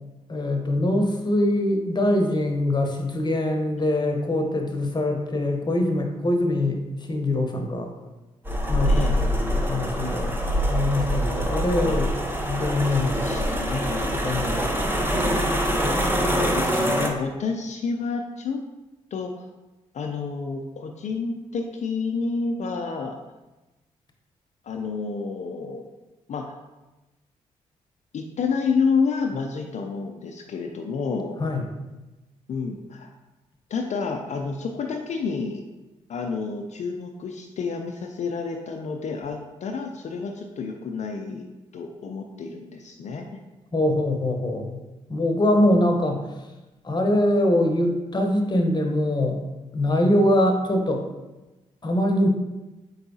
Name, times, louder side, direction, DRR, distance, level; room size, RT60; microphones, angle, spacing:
voice 1, 0.3-6.8 7.1-7.9 8.7-10.3 10.7-13.2 14.2-14.9 31.4-31.6 43.7-44.8 45.1-46.3 46.8-49.4 49.7-51.0 51.8-52.3, left 1 dB, 30° left, 3 dB, 0.9 m, -23 dB
sound 1, 8.5-17.1, equal, 15° right, 0.8 m, -24 dB
voice 2, 8.9-9.2 11.9-12.0 12.9-14.1 16.2-18.6 19.1-19.4 19.9-23.2 24.6-25.9 26.3-26.6 28.1-31.4 32.5-33.1 33.7-35.6 36.1-41.5 41.7-43.4, left 4 dB, 55° left, 2 dB, 0.4 m, -29 dB
4.5 x 3.9 x 2.7 m, 1.1 s
supercardioid pair, 50°, 14 cm